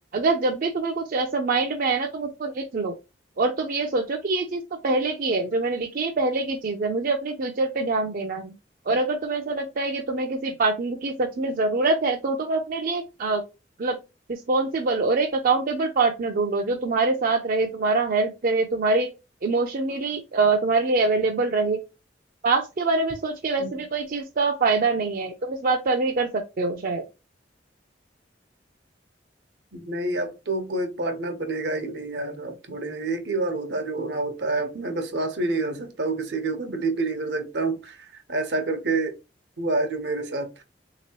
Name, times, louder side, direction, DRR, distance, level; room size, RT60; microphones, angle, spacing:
voice 1, 0.1-2.9 3.4-8.5 8.9-13.4 13.8-14.0 14.3-19.1 19.4-21.8 22.4-27.0, right 3 dB, 55° right, 0.5 m, -24 dB
voice 2, 29.7-38.0 38.3-39.1 39.6-40.6, right 2 dB, 75° right, 0.9 m, -28 dB
3.6 x 2.9 x 2.9 m
head